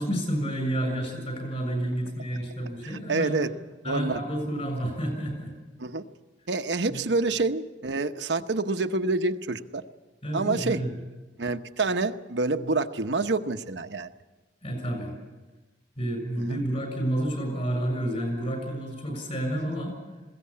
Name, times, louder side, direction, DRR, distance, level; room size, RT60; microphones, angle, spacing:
voice 1, 0.0-3.4 3.8-5.5 6.9-7.1 10.2-11.0 14.6-15.1 16.0-20.0, right 1 dB, 35° left, 5 dB, 7.0 m, -30 dB
voice 2, 2.8-3.5 3.9-4.2 5.8-6.0 6.5-9.8 10.3-10.8 11.4-14.1 16.4-16.6, right 3 dB, 75° right, 7 dB, 0.9 m, -27 dB
21.0 x 17.0 x 8.6 m, 1.2 s
head